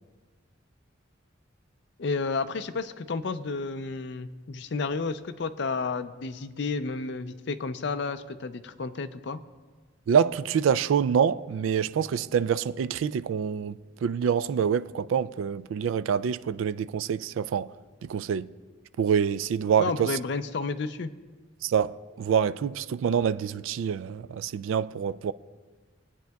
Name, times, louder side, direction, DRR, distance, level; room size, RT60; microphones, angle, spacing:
voice 1, 2.0-9.4 19.8-21.1, left 4 dB, 60° left, 0.5 m, -31 dB
voice 2, 10.1-17.7 18.1-18.5 19.0-20.1 21.6-25.3, right 7 dB, 85° right, 0.3 m, -26 dB
22.0 x 9.1 x 2.3 m
head